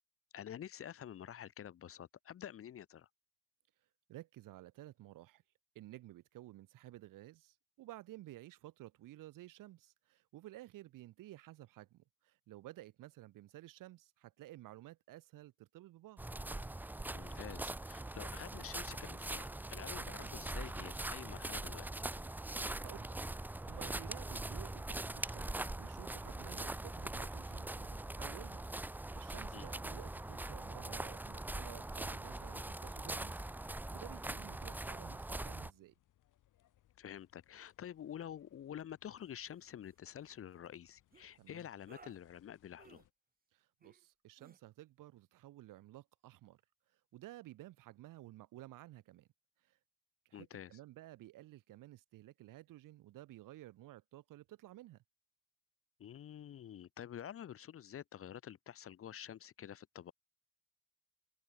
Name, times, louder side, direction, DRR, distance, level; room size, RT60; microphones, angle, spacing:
voice 1, 0.3-3.1 17.1-21.9 29.5-29.7 37.0-43.0 50.3-50.7 56.0-60.1, left 10 dB, 45° left, 0.7 m, -49 dB
voice 2, 4.1-5.4 5.8-16.2 20.0-20.3 22.6-23.2 23.7-28.6 29.1-33.5 33.9-35.9 41.4-41.6 43.5-46.6 47.1-49.3 49.7-49.8 50.3-55.0, right 16 dB, 80° right, 1.9 m, -54 dB
sound 1, 16.2-35.7, right 2 dB, 5° right, 0.4 m, -42 dB
sound 2, 29.2-43.1, left 13 dB, 70° left, 3.7 m, -75 dB
sound 3, 39.2-39.3 39.6-39.9 41.1-41.3 41.9-42.2 42.8-43.1 43.8-44.0 44.4-44.6, right 5 dB, 30° right, 1.8 m, -60 dB
open air
cardioid pair, 80°, 32 cm